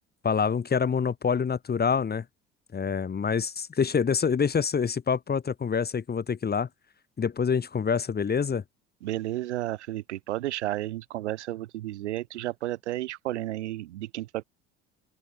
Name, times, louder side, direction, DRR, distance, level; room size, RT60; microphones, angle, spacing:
voice 1, 0.2-2.2 2.7-6.7 7.2-8.6, left 6 dB, 30° left, 1.5 m, -26 dB
voice 2, 9.0-14.4, right 15 dB, 80° right, 6.4 m, -32 dB
open air
hypercardioid pair, 60°, 34 cm